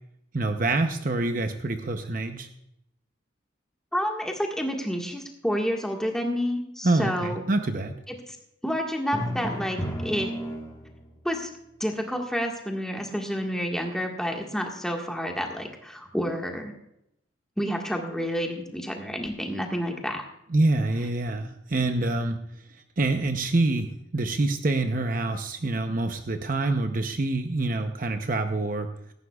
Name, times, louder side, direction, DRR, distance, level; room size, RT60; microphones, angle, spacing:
voice 1, 0.3-2.5 6.8-7.9 20.5-22.4 22.7-28.9, right 2 dB, 45° right, 6 dB, 0.7 m, -26 dB
voice 2, 3.9-7.4 8.1-8.4 8.6-10.3 11.2-11.5 11.8-16.7 17.6-20.2, equal, 5° left, 1 dB, 1.6 m, -29 dB
Drum, 9.1-11.1, equal, 20° left, 1.5 m, -32 dB
17.0 x 14.5 x 2.4 m, 0.79 s
head